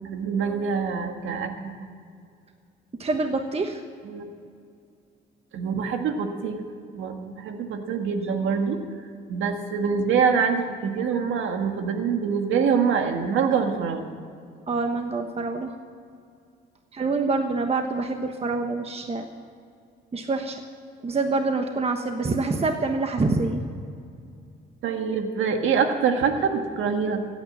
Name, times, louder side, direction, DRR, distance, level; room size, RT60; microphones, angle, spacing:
voice 1, 0.0-1.7 4.0-4.3 5.5-6.6 7.0-8.8 9.3-14.1 24.8-27.2, right 6 dB, 80° right, 5 dB, 1.7 m, -25 dB
voice 2, 3.0-3.8 14.7-15.7 16.9-19.3 20.1-20.6 21.0-23.6, right 3 dB, 30° right, 5 dB, 1.2 m, -26 dB
16.0 x 9.3 x 8.7 m, 2.3 s
cardioid pair, 90°, 20 cm